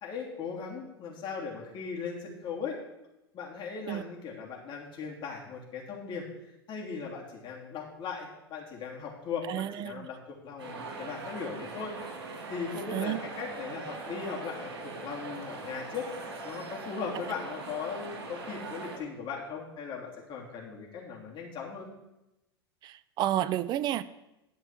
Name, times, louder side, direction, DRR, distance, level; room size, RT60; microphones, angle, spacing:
voice 1, 0.0-2.8 3.3-6.2 6.7-11.9 12.5-21.9, left 5 dB, 35° left, -2 dB, 3.2 m, -38 dB
voice 2, 9.5-10.1 12.9-13.2 22.8-24.0, right 12 dB, 35° right, 16 dB, 0.5 m, -30 dB
sound 1, 10.6-19.0, right 3 dB, 70° right, 3.2 m, -41 dB
11.5 x 5.5 x 5.9 m, 0.93 s
figure-of-eight pair, 90°, 13 cm